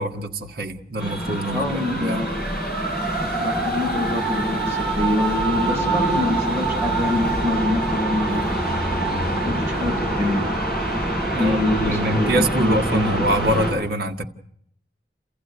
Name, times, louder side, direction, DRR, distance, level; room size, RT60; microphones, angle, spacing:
voice 1, 0.0-2.2 11.3-14.2, right 1 dB, 55° right, 1.7 m, -25 dB
sound 1, 1.0-13.7, right 2 dB, ahead, 7.9 m, -25 dB
voice 2, 1.5-2.3 3.2-8.5 9.4-10.5 11.4-13.1, left 2 dB, 15° right, 5.6 m, -25 dB
29.0 x 15.0 x 9.5 m
head